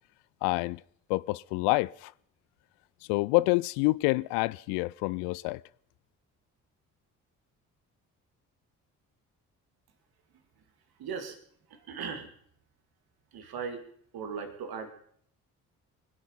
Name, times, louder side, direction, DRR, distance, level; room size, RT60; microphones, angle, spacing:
voice 1, 0.4-0.8 1.1-2.1 3.1-5.6, left 22 dB, 65° left, 0.5 m, -27 dB
voice 2, 11.0-11.4 11.7-12.3 13.3-13.8 14.1-14.9, right 6 dB, 55° right, 2.5 m, -38 dB
24.5 x 8.4 x 5.6 m
figure-of-eight pair, 45°, 43 cm